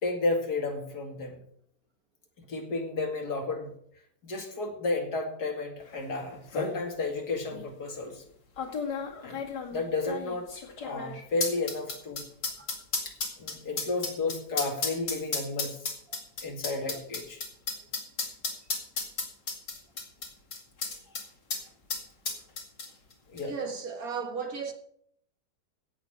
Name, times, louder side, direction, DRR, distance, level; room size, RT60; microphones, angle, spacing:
voice 1, 0.0-1.4 2.4-3.7 4.2-8.3 9.2-9.4 9.7-10.5 10.8-12.2 13.0-15.8 16.4-17.4 23.3-23.5, left 3 dB, 65° left, 2.7 m, -32 dB
sound 1, 6.0-6.1 6.3-6.7 7.5-7.6 8.6-21.2 21.5-21.6 21.9-23.1 23.4-23.5, left 4 dB, 85° left, 3.0 m, -33 dB
voice 2, 23.4-24.7, right 5 dB, 60° right, 2.1 m, -35 dB
16.5 x 6.7 x 6.1 m
omnidirectional pair, 1.8 m